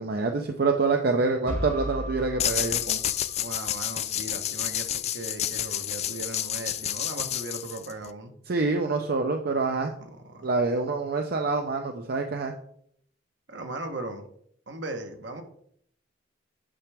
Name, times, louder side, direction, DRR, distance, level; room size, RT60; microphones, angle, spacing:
voice 1, 0.0-3.0 8.5-9.9 10.4-12.5, right 3 dB, 55° right, 4 dB, 0.6 m, -26 dB
sound 1, 1.5-3.5, equal, 15° left, 3.3 m, -35 dB
sound 2, 2.4-8.1, left 11 dB, 35° left, 0.3 m, -30 dB
voice 2, 3.4-8.3 10.2-10.5 13.5-14.3 14.7-15.4, right 2 dB, 70° right, 6 dB, 1.1 m, -38 dB
8.9 x 5.9 x 3.4 m, 0.67 s
head